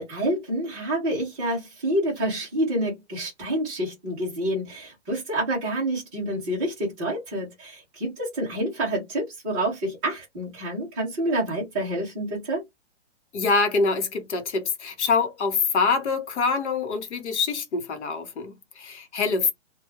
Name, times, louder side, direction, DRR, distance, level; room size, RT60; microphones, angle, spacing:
voice 1, 0.0-12.6, right 1 dB, 5° right, 0.4 m, -28 dB
voice 2, 13.3-19.5, left 4 dB, 70° left, 0.9 m, -25 dB
2.2 x 2.1 x 3.0 m
hypercardioid pair, 165°, 37 cm